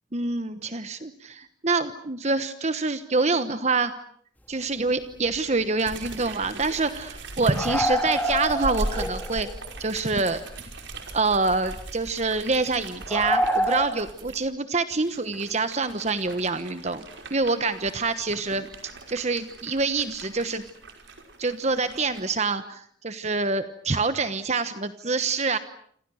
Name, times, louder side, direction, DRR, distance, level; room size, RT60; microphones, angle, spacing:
voice 1, 0.1-3.9 4.5-9.5 9.8-10.4 11.1-17.0 17.3-20.6 21.4-25.6, right 3 dB, 35° right, 11 dB, 1.2 m, -26 dB
sound 1, 4.8-4.9 5.3-5.4 5.6-5.7 7.5-9.5 10.1-10.2 11.6-11.8 13.1-13.9, equal, 10° left, 2.3 m, -26 dB
sound 2, 5.8-14.4 15.0-22.3, right 2 dB, 75° right, 5.5 m, -39 dB
28.0 x 27.0 x 6.4 m, 0.63 s
head